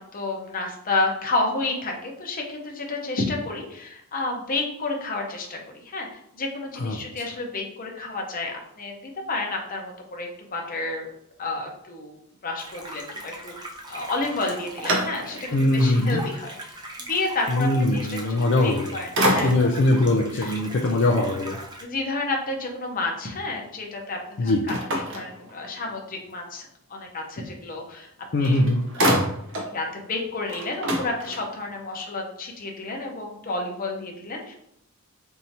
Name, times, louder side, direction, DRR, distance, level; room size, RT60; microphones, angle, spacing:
voice 1, 0.0-11.1 11.4-12.1 12.4-19.5 20.0-20.6 20.9-21.0 21.8-28.1 28.4-28.6 28.9-29.1 29.7-34.5, left 2 dB, 40° left, 1 dB, 0.8 m, -31 dB
sound 1, 12.6-21.8, right 1 dB, 20° right, 0.6 m, -39 dB
sound 2, 14.2-15.6 16.2-16.3 18.5-18.8 19.1-19.9 24.7-25.9 28.0-28.1 28.4-29.8 30.1-30.2 30.4-31.7, right 1 dB, 60° right, 0.8 m, -27 dB
voice 2, 15.5-16.2 17.5-18.9 19.4-21.6 24.4-24.6 28.3-28.8, left 2 dB, 55° left, 1 dB, 0.4 m, -21 dB
4.6 x 2.7 x 2.8 m, 0.75 s
head